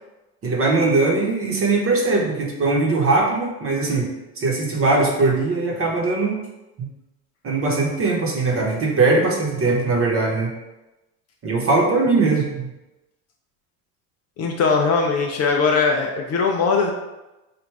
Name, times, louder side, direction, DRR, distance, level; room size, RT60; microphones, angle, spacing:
voice 1, 0.4-4.1 4.4-6.4 6.8-6.9 7.4-10.5 11.4-12.7, right 3 dB, 30° right, -1 dB, 1.0 m, -20 dB
voice 2, 14.4-16.9, left 4 dB, 40° left, 2 dB, 0.5 m, -20 dB
4.7 x 2.5 x 3.3 m, 1.0 s
supercardioid pair, 105°, 41 cm